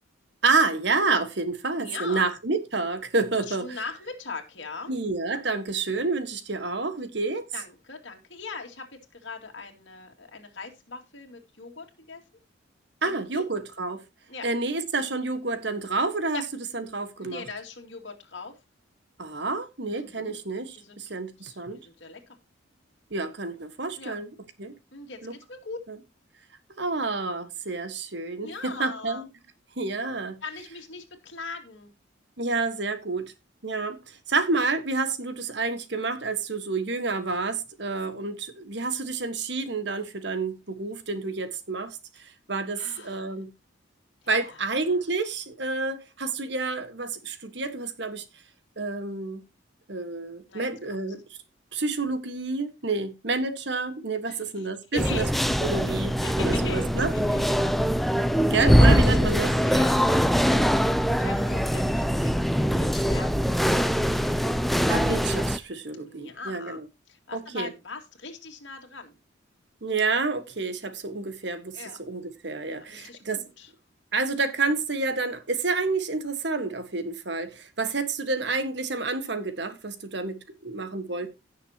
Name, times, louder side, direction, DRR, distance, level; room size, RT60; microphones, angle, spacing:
voice 1, 0.4-3.8 4.9-7.4 13.0-14.0 14.4-16.4 16.7-17.5 19.2-21.8 23.1-24.3 24.6-24.8 25.2-25.3 25.9-26.0 26.8-29.3 29.8-30.4 32.4-33.3 33.6-43.5 44.3-48.2 48.8-49.4 49.9-51.2 51.7-55.2 55.6-57.1 58.5-59.5 64.9-66.9 67.3-67.7 69.8-73.5 74.1-81.3, right 3 dB, 60° right, 1.5 m, -29 dB
voice 2, 1.8-2.2 3.5-5.0 7.5-12.2 13.0-13.4 14.3-14.5 16.3-16.4 17.2-18.5 20.0-20.4 20.8-21.0 21.4-21.6 21.8-22.4 24.0-24.2 24.9-25.8 28.4-29.2 30.4-31.9 42.7-43.3 44.2-44.7 50.5-50.7 54.3-54.7 54.9-55.3 56.2-57.7 58.9-59.1 59.6-60.2 60.5-60.7 61.2-63.9 65.9-66.8 67.1-69.2 71.7-72.0 72.9-73.7, left 4 dB, 65° left, 2.3 m, -40 dB
sound 1, 55.0-65.6, equal, ahead, 0.5 m, -22 dB
17.0 x 6.6 x 2.9 m
head